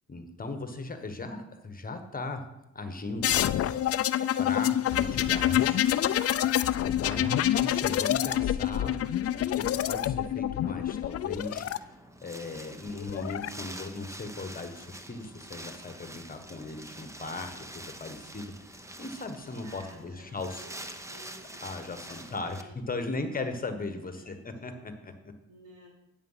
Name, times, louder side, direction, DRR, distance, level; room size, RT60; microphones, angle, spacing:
voice 1, 0.1-2.5 2.7-3.4 4.4-5.8 6.7-9.0 9.4-11.9 12.2-20.6 21.6-25.3, left 3 dB, 30° left, 7 dB, 1.3 m, -38 dB
sound 1, 3.2-11.8 12.9-13.5, left 11 dB, 50° left, 0.5 m, -27 dB
Wind, 11.4-22.6, right 1 dB, 10° right, 0.9 m, -46 dB
voice 2, 19.6-22.8 23.0-23.4 23.8-24.5 25.5-25.9, right 1 dB, 80° right, -3 dB, 4.2 m, -54 dB
9.5 x 7.0 x 5.7 m, 0.89 s
cardioid pair, 90°, 30 cm